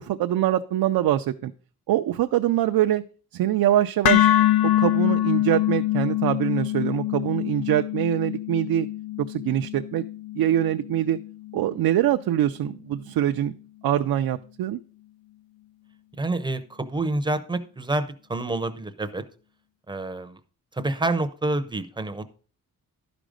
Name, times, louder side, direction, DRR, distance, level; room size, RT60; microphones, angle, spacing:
voice 1, 0.0-1.5 1.9-3.0 3.3-4.3 4.6-8.9 9.2-10.0 10.4-11.2 11.5-13.5 13.8-14.8, right 12 dB, 80° right, 6 dB, 0.5 m, -24 dB
sound 1, 4.0-12.2, left 13 dB, 85° left, 0.6 m, -25 dB
voice 2, 16.2-19.2 19.9-20.4 20.7-22.2, right 2 dB, 15° right, 9 dB, 0.6 m, -28 dB
12.0 x 5.1 x 5.0 m, 0.39 s
wide cardioid pair, 170°, 36 cm